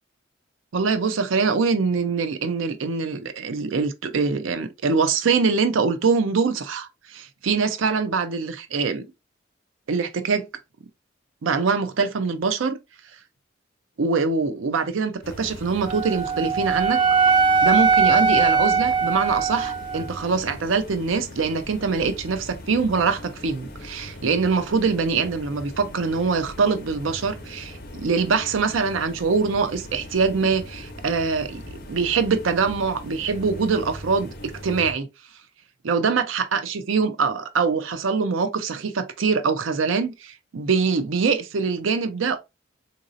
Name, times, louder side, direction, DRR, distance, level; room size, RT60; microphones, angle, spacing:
voice 1, 0.7-9.1 9.9-10.5 11.4-12.8 14.0-17.0 17.6-34.3 34.6-35.1 35.8-42.4, right 5 dB, 90° right, 0.5 m, -23 dB
sound 1, 15.2-34.9, left 1 dB, 50° left, 0.7 m, -40 dB
Wind instrument woodwind instrument, 15.8-20.1, right 5 dB, 25° right, 0.3 m, -20 dB
3.9 x 2.6 x 2.5 m
head